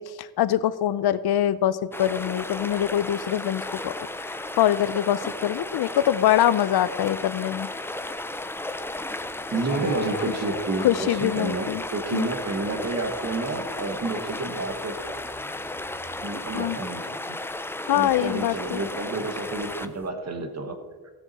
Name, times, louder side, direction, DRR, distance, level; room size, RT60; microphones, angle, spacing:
voice 1, 0.0-3.9 4.2-7.7 10.8-11.8 12.1-12.3 16.5-16.8 17.9-18.8, left 11 dB, 80° left, 16 dB, 0.6 m, -24 dB
sound 1, 1.9-20.1, left 2 dB, 5° left, 0.3 m, -34 dB
sound 2, 8.0-16.8, left 2 dB, 25° left, 1.1 m, -46 dB
voice 2, 9.5-15.0 16.2-17.4 17.9-20.7, right 3 dB, 45° right, 6 dB, 1.4 m, -30 dB
15.5 x 7.0 x 4.2 m, 1.5 s
wide cardioid pair, 150°, 38 cm